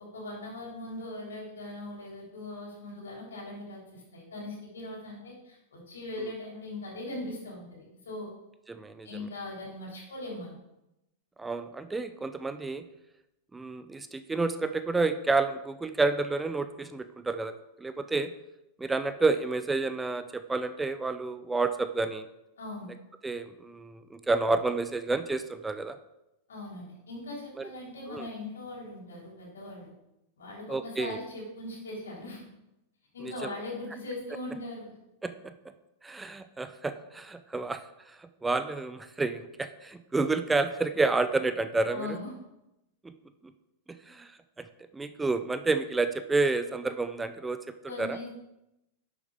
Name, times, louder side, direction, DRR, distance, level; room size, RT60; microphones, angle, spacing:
voice 1, 0.0-7.7 8.0-8.3 9.0-10.5 22.6-22.9 26.5-29.9 30.4-32.5 33.1-34.9 41.9-42.3 47.9-48.3, left 2 dB, 70° left, -3 dB, 3.9 m, -40 dB
voice 2, 8.7-9.1 11.4-12.8 13.5-18.3 18.8-22.2 23.2-26.0 27.6-27.7 28.1-28.3 30.7-31.2 33.2-33.3 35.2-35.5 36.0-42.2 43.0-43.1 44.1-44.3 44.9-47.6 48.0-48.2, right 3 dB, 10° right, 10 dB, 0.5 m, -30 dB
11.0 x 7.2 x 3.5 m, 0.90 s
figure-of-eight pair, 95°, 0 cm